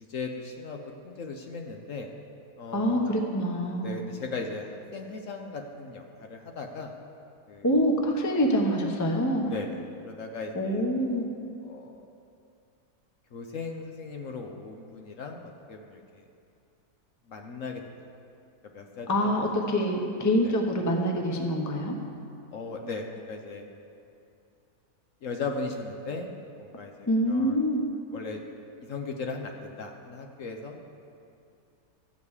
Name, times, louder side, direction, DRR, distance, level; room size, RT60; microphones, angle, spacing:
voice 1, 0.0-2.1 2.6-3.1 3.8-6.9 7.5-7.7 9.5-10.8 11.6-12.0 13.3-16.2 17.3-17.9 18.7-19.3 20.4-20.5 22.5-23.6 25.2-26.3 26.6-27.6 28.1-28.4 28.9-30.8, left 4 dB, 60° left, 3 dB, 1.1 m, -37 dB
voice 2, 2.7-3.9 7.6-9.5 10.5-11.3 19.1-22.0 27.1-27.8, equal, 15° left, 1 dB, 0.7 m, -25 dB
13.0 x 5.2 x 8.1 m, 2.5 s
omnidirectional pair, 1.7 m